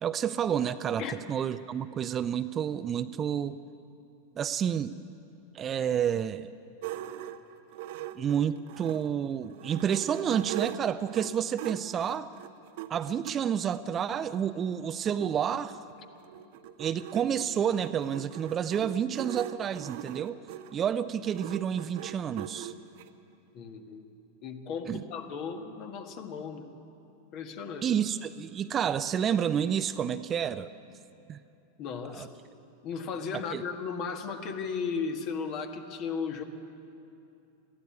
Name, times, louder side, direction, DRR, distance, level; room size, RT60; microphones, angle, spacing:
voice 1, 0.0-3.6 4.4-5.0 5.5-6.5 8.2-12.3 12.9-15.8 16.8-20.4 20.7-22.7 24.9-25.0 27.8-30.7 31.3-31.4 32.1-32.3 33.5-33.6, right 8 dB, 25° right, 13 dB, 0.5 m, -29 dB
sound 1, 6.8-9.1 9.5-13.4 14.1-14.2 14.5-14.6 14.8-23.1, right 12 dB, 50° right, 0.8 m, -41 dB
voice 2, 23.5-24.0 24.4-26.7 27.3-27.9 31.8-32.3 32.8-36.4, left 5 dB, 40° left, 6 dB, 1.6 m, -35 dB
21.0 x 15.0 x 9.5 m, 2.7 s
figure-of-eight pair, 90°, 0 cm